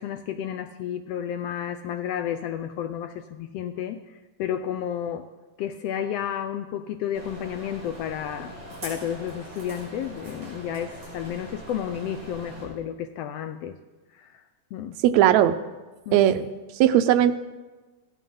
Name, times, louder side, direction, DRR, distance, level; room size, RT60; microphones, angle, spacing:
voice 1, 0.0-5.3 5.6-8.5 8.8-13.8 14.1-14.4 14.7-15.0 16.1-16.2, left 9 dB, 85° left, 9 dB, 1.4 m, -32 dB
sound 1, 7.1-12.6, right 1 dB, 40° right, 6.5 m, -42 dB
voice 2, 15.0-15.5 16.1-16.5 16.8-17.4, right 11 dB, 80° right, 10 dB, 1.8 m, -18 dB
15.5 x 11.5 x 5.5 m, 1.2 s
omnidirectional pair, 3.4 m